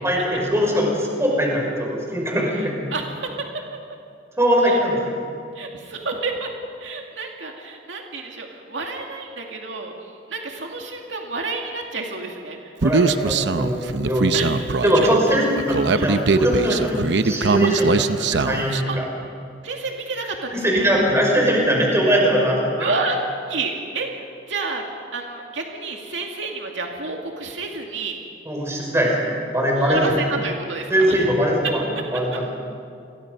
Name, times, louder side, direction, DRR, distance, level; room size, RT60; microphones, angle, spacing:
voice 1, 0.0-2.8 4.4-5.0 12.8-14.3 14.8-19.0 20.5-22.9 28.5-30.2 30.9-31.8 32.1-32.5, equal, 15° right, -1 dB, 5.8 m, -21 dB
voice 2, 2.9-3.5 4.7-4.8 5.5-6.5 6.8-12.7 14.3-14.8 15.9-16.1 18.9-19.0 19.6-20.9 22.8-23.2 23.5-24.1 24.5-24.8 25.1-28.2 29.8-31.3 32.0-32.1, right 3 dB, 85° right, 1 dB, 2.3 m, -29 dB
Human voice, 12.8-18.8, right 4 dB, 70° right, 0.8 m, -21 dB
30.0 x 22.5 x 5.4 m, 2.4 s
head